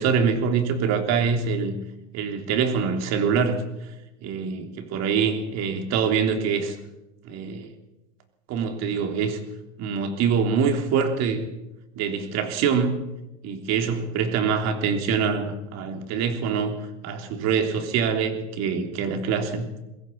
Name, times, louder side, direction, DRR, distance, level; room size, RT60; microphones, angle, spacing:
voice 1, 0.0-1.8 2.1-3.6 4.2-6.8 7.2-7.7 8.5-9.4 9.8-11.5 12.0-13.0 13.4-19.6, right 6 dB, 45° right, 5 dB, 3.4 m, -24 dB
22.0 x 15.5 x 8.7 m, 1.0 s
supercardioid pair, 135°, 36 cm